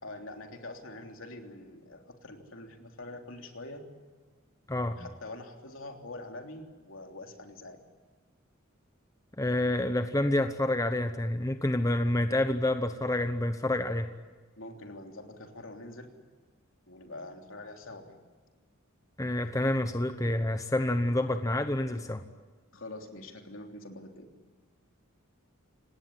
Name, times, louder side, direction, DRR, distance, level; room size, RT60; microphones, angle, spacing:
voice 1, 0.0-3.8 5.0-7.8 14.6-16.1 16.9-18.2 22.7-24.3, left 2 dB, 65° left, 4 dB, 3.3 m, -45 dB
voice 2, 4.7-5.1 9.4-14.1 19.2-22.2, left 1 dB, 15° left, 8 dB, 1.0 m, -28 dB
26.5 x 19.0 x 9.7 m, 1.4 s
head